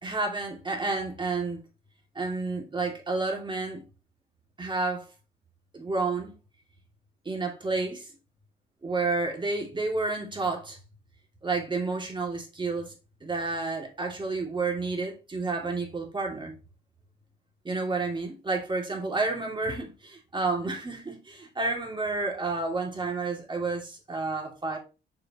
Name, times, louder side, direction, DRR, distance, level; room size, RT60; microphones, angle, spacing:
voice 1, 0.0-1.6 2.1-3.8 4.6-5.1 5.7-6.3 7.2-8.1 8.8-10.8 11.4-12.9 13.2-16.6 17.6-24.8, right 3 dB, 25° right, 2.5 m, -30 dB
6.5 x 5.3 x 3.0 m
cardioid pair, 90°, 20 cm